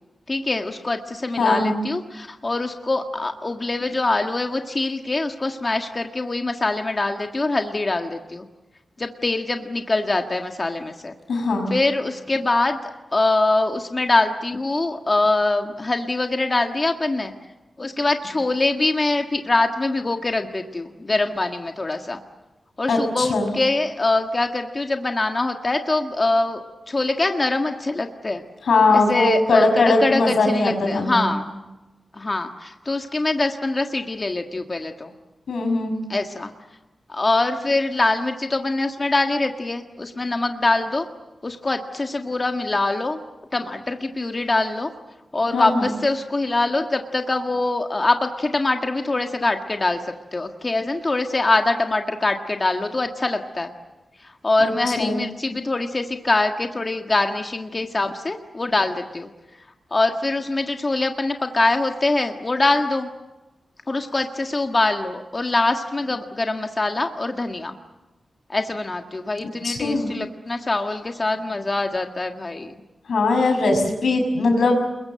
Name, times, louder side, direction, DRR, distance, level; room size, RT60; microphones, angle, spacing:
voice 1, 0.3-8.5 9.0-11.1 11.7-12.8 13.1-17.3 17.8-22.2 22.8-28.4 28.9-31.5 32.2-35.1 36.1-36.5 37.1-41.1 41.4-43.2 43.5-44.9 45.3-50.0 50.3-53.7 54.2-59.3 59.9-63.1 63.9-67.7 68.5-72.7, left 2 dB, 30° left, 5 dB, 1.7 m, -23 dB
voice 2, 1.4-1.8 11.3-11.7 22.9-23.5 28.7-31.3 35.5-36.0 45.5-45.9 54.6-54.7 55.0-55.2 69.6-70.1 73.1-74.7, left 3 dB, 90° left, 4 dB, 6.3 m, -20 dB
29.0 x 22.5 x 7.8 m, 1.1 s
wide cardioid pair, 120°, 0 cm